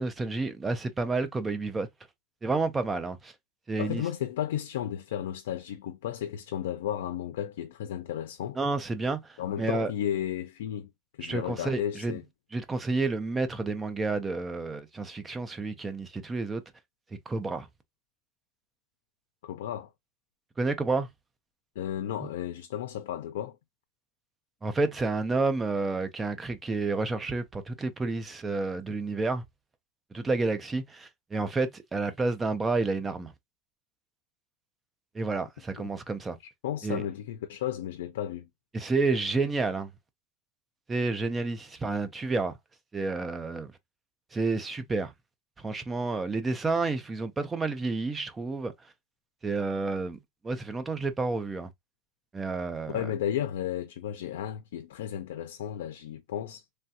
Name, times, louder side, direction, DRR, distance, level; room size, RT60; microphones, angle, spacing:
voice 1, 0.0-1.9 2.4-3.3 3.7-4.0 8.6-9.9 11.2-12.2 12.5-16.6 17.3-17.7 20.6-21.1 24.6-29.4 30.1-33.3 35.1-36.4 36.8-37.0 38.7-39.9 40.9-42.5 42.9-43.7 44.3-45.1 45.6-48.7 49.4-50.2 50.4-51.7 52.3-53.1, right 3 dB, 10° right, 0.4 m, -30 dB
voice 2, 3.8-8.6 9.4-10.9 11.2-12.2 19.4-19.9 21.8-23.6 35.8-35.9 36.6-38.5 52.9-56.8, left 10 dB, 90° left, 0.4 m, -33 dB
3.2 x 2.3 x 2.7 m
supercardioid pair, 165°, 0 cm